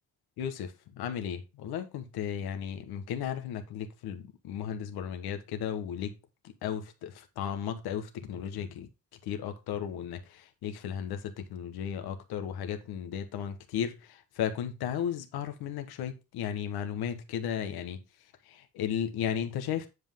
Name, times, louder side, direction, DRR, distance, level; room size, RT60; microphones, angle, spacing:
voice 1, 0.4-6.2 6.4-8.9 9.2-18.0 18.5-19.9, left 9 dB, 90° left, 1.3 m, -35 dB
9.9 x 5.5 x 3.6 m
supercardioid pair, 55°, 37 cm